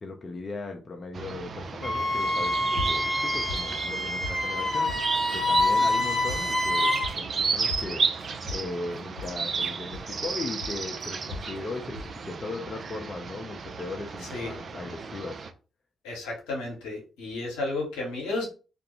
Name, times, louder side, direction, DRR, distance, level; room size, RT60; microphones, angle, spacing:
voice 1, 0.0-5.0 5.3-8.1 8.5-15.4, left 3 dB, 40° left, 2 dB, 0.5 m, -38 dB
sound 1, 1.1-15.5, right 5 dB, 50° right, 0.4 m, -33 dB
Wind instrument woodwind instrument, 1.8-7.1, left 1 dB, 5° left, 1.1 m, -26 dB
sound 2, 2.3-3.2 3.5-4.5 4.9-5.3 5.6-5.8 6.1-7.3 7.7-10.3 10.6-11.6 11.9-12.2, left 3 dB, 80° right, 0.8 m, -38 dB
voice 2, 5.7-6.1 14.3-14.5 16.0-18.5, left 2 dB, 80° left, -1 dB, 0.8 m, -33 dB
2.4 x 2.1 x 2.9 m, 0.35 s
hypercardioid pair, 40°, 0 cm